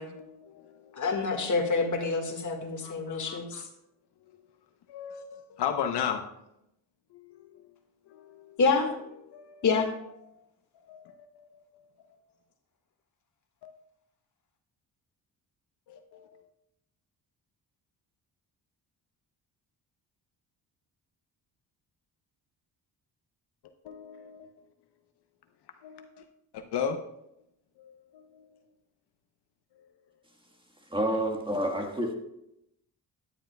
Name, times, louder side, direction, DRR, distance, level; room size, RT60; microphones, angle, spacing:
voice 1, 0.1-1.0 2.8-3.6 4.9-6.2 7.1-7.6 8.1-8.6 9.2-9.7 10.8-11.6 12.0-12.2 13.6-13.7 15.9-16.4 23.8-24.5 25.8-26.3 26.5-27.0 27.8-28.6, left 8 dB, 75° left, 6 dB, 0.8 m, -37 dB
voice 2, 1.0-3.6 8.6-8.9 9.6-9.9, left 4 dB, 45° left, 4 dB, 1.8 m, -27 dB
voice 3, 30.9-32.1, right 1 dB, 10° right, 2 dB, 1.5 m, -28 dB
13.0 x 10.0 x 2.3 m, 0.81 s
cardioid pair, 100°, 40 cm